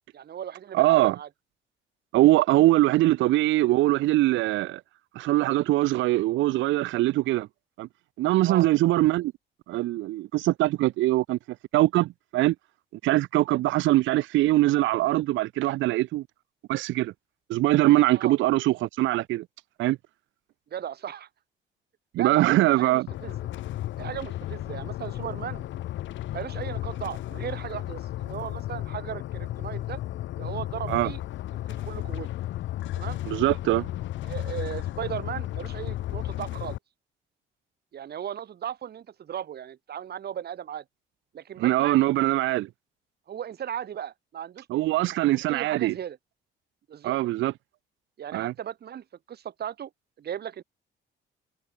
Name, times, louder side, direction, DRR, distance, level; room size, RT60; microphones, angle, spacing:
voice 1, 0.1-1.3 8.4-8.7 13.5-13.6 18.1-18.3 20.7-21.3 22.1-23.3 24.0-25.6 26.3-30.0 30.4-31.2 31.8-32.3 33.0-33.2 34.2-36.8 37.9-40.8 41.3-42.0 43.3-44.7 45.1-46.2 46.9-47.2 48.2-49.9 50.2-50.6, right 9 dB, 55° right, 1.3 m, -36 dB
voice 2, 0.7-1.2 2.1-4.8 5.2-7.5 7.8-7.9 8.2-9.3 9.7-11.4 11.7-12.5 13.0-16.2 16.7-17.1 17.5-19.4 19.8-20.0 22.1-23.1 30.9-31.1 33.3-33.9 41.6-42.7 44.7-45.9 47.0-47.5 48.3-48.5, right 17 dB, 75° right, 0.4 m, -22 dB
sound 1, 23.1-36.8, left 14 dB, 70° left, 0.7 m, -34 dB
cardioid pair, 90°, 20 cm